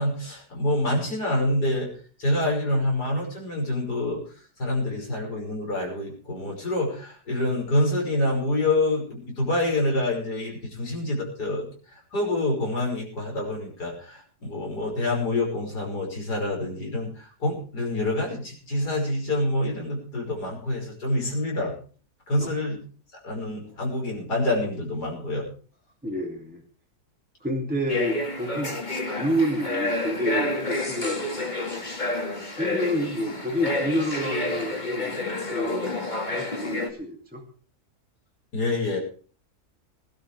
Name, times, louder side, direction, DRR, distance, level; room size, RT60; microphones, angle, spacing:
voice 1, 0.0-1.9 2.2-4.2 4.6-21.7 22.3-22.8 23.2-25.5 38.5-39.0, left 1 dB, 85° left, -1 dB, 6.2 m, -27 dB
voice 2, 26.0-26.6 27.4-28.8 29.1-31.8 32.6-35.1 35.5-35.9 36.3-37.4, equal, 5° right, -1 dB, 2.7 m, -29 dB
sound 1, 27.9-36.9, left 2 dB, 30° left, 2.2 m, -29 dB
22.0 x 12.0 x 3.4 m, 0.41 s
omnidirectional pair, 1.7 m